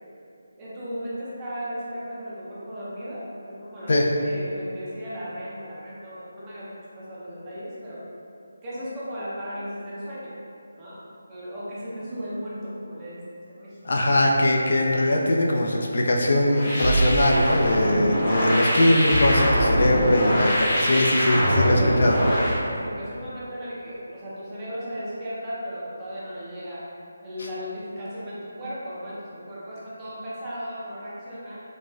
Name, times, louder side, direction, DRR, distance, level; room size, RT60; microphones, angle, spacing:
voice 1, 0.6-8.0 8.6-10.3 10.8-11.0 11.3-13.8 18.4-18.9 21.5-26.9 27.2-31.6, equal, 20° right, -9 dB, 0.7 m, -36 dB
voice 2, 13.8-22.2, left 1 dB, 55° left, -1 dB, 0.3 m, -21 dB
sound 1, 16.5-22.6, equal, 20° left, 0.7 m, -24 dB
sound 2, 16.8-17.9 19.1-20.3 21.3-22.6, right 1 dB, 85° right, 1.0 m, -26 dB
4.0 x 2.2 x 2.4 m, 2.6 s
figure-of-eight pair, 155°, 0 cm